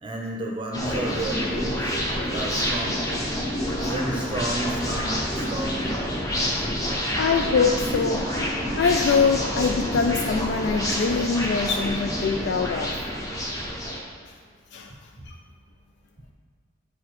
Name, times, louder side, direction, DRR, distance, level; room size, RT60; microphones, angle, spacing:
voice 1, 0.0-3.1 3.8-6.0 6.8-6.9 12.2-12.3, right 1 dB, 30° right, 0 dB, 0.6 m, -31 dB
sound 1, 0.7-14.0, equal, 20° left, 0.9 m, -28 dB
voice 2, 7.2-8.3 8.8-13.0 14.7-14.9 15.3-15.4, left 5 dB, 65° left, 5 dB, 0.3 m, -23 dB
8.2 x 4.7 x 3.0 m, 2.1 s
head